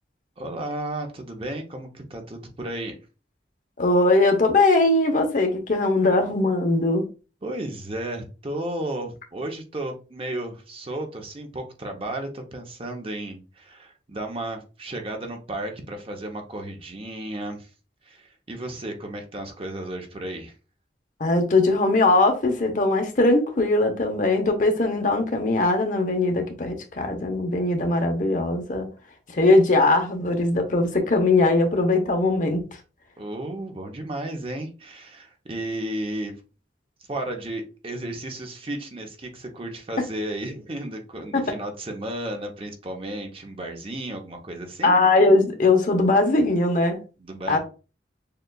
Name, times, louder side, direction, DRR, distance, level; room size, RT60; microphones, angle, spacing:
voice 1, 0.4-2.9 7.4-17.7 18.0-20.5 33.2-36.3 37.0-45.0 47.2-47.6, right 1 dB, 30° right, 0.7 m, -33 dB
voice 2, 3.8-7.0 21.2-28.9 29.3-32.6 41.3-41.4 44.8-47.0 47.5-47.6, left 2 dB, 45° left, 0.7 m, -20 dB
6.5 x 2.3 x 2.3 m
head